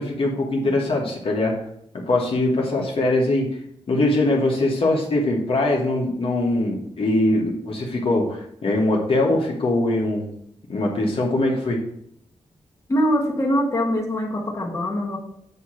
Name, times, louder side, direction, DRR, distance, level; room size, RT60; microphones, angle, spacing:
voice 1, 0.0-1.5 2.1-3.6 3.9-10.3 10.7-11.8, left 2 dB, 55° left, -1 dB, 1.3 m, -22 dB
voice 2, 12.9-15.2, equal, 25° left, -3 dB, 1.4 m, -23 dB
8.1 x 2.9 x 6.2 m, 0.71 s
wide cardioid pair, 135°, 11 cm